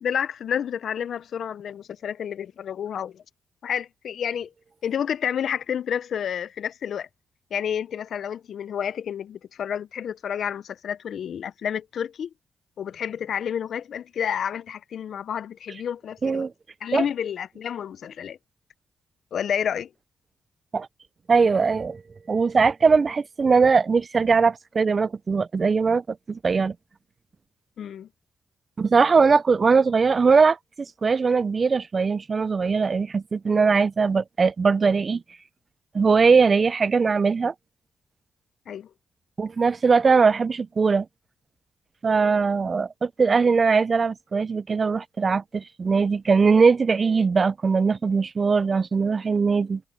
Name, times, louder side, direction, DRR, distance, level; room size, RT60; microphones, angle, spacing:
voice 1, 0.0-3.2 3.6-4.5 4.8-7.1 7.5-12.3 12.8-16.5 16.8-18.4 19.3-19.9 27.8-28.1 38.7-38.9, left 8 dB, 70° left, 0.5 m, -30 dB
voice 2, 21.3-22.0 22.3-26.7 28.8-30.6 31.0-35.2 35.9-37.5 39.4-41.1 42.0-49.8, right 5 dB, 40° right, 0.4 m, -20 dB
cardioid pair, 85°, 0 cm